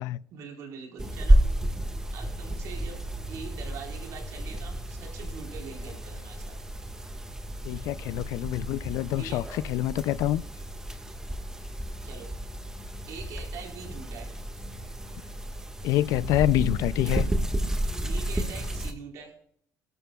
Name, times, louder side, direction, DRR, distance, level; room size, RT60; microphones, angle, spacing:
voice 1, 0.3-1.4 2.1-3.0 3.3-6.6 9.2-9.4 12.0-12.3 13.1-14.3 18.0-19.4, right 6 dB, 75° right, 4.3 m, -43 dB
sound 1, 1.0-18.9, right 1 dB, 10° right, 1.6 m, -31 dB
voice 2, 7.6-10.4 15.8-17.3, left 14 dB, 85° left, 0.4 m, -26 dB
20.5 x 12.5 x 2.3 m
cardioid pair, 130°, 6 cm